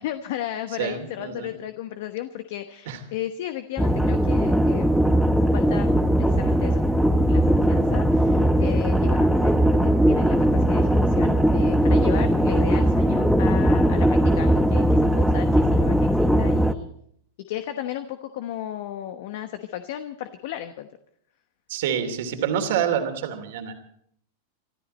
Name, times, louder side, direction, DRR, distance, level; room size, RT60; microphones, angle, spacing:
voice 1, 0.0-5.1 5.5-5.9 6.2-16.9 17.5-20.9, left 12 dB, 65° left, 9 dB, 1.0 m, -35 dB
voice 2, 0.8-1.5 2.9-3.0 21.7-23.7, right 8 dB, 65° right, 6 dB, 2.7 m, -27 dB
sound 1, 3.8-16.7, equal, ahead, 1.0 m, -19 dB
25.0 x 13.5 x 4.3 m, 0.68 s
hypercardioid pair, 105°, 0 cm